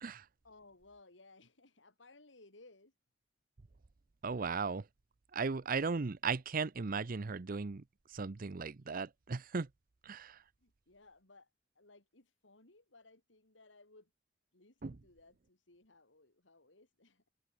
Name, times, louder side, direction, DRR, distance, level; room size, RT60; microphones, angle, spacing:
voice 1, 0.4-2.9 10.6-14.1 14.5-17.3, left 2 dB, 90° left, 3.9 m, -62 dB
voice 2, 4.2-4.9 5.3-9.7 10.0-10.4 14.8-15.0, right 4 dB, 50° right, 0.6 m, -37 dB
head